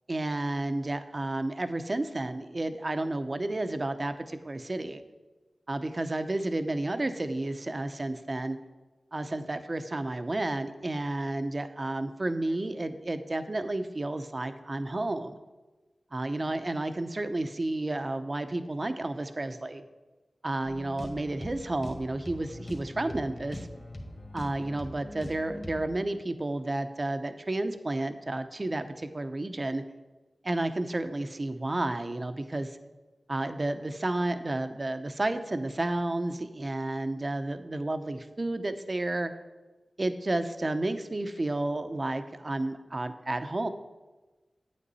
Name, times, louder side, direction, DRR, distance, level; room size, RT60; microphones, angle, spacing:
voice 1, 0.1-5.0 5.7-8.6 9.1-15.4 16.1-19.8 20.4-23.7 24.3-29.8 30.4-32.8 33.3-39.3 40.0-43.7, right 2 dB, 40° right, 9 dB, 0.7 m, -31 dB
sound 1, 20.6-25.8, left 1 dB, 35° left, 1.8 m, -42 dB
8.9 x 8.4 x 4.1 m, 1.2 s
cardioid pair, 45°, 0 cm